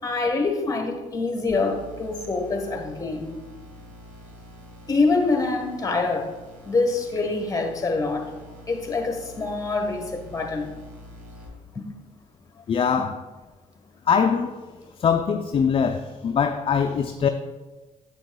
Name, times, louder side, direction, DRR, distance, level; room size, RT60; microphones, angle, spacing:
voice 1, 0.0-3.3 4.9-6.3 6.6-8.3 8.7-10.7 11.7-11.9, left 3 dB, 25° left, 3 dB, 1.4 m, -25 dB
sound 1, 1.5-11.5, left 1 dB, 90° right, 1.9 m, -46 dB
voice 2, 12.7-13.2 14.1-14.6 15.0-17.3, left 6 dB, 40° left, 6 dB, 0.4 m, -22 dB
8.0 x 6.8 x 2.3 m, 1.2 s
supercardioid pair, 75°, 14 cm